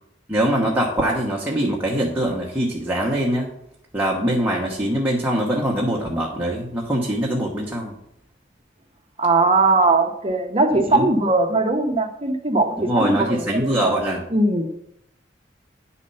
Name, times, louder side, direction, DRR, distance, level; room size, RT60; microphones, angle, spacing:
voice 1, 0.3-3.5 3.9-7.9 10.8-11.1 12.8-14.2, right 1 dB, 10° right, -3 dB, 1.1 m, -23 dB
voice 2, 9.2-13.9 14.3-14.7, right 2 dB, 30° right, 5 dB, 0.8 m, -20 dB
9.9 x 4.3 x 5.5 m, 0.76 s
head